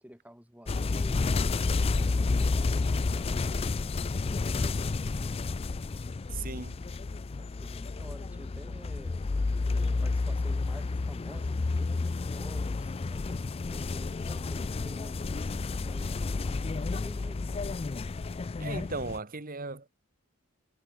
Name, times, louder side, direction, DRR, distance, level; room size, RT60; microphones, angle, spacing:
voice 1, 0.0-3.3 3.7-5.4 7.4-9.2 9.6-17.7, equal, 5° right, 7.8 m, -51 dB
sound 1, 0.7-19.2, left 3 dB, 25° left, 0.3 m, -30 dB
voice 2, 6.3-6.8 18.6-19.9, right 3 dB, 40° right, 1.5 m, -37 dB
head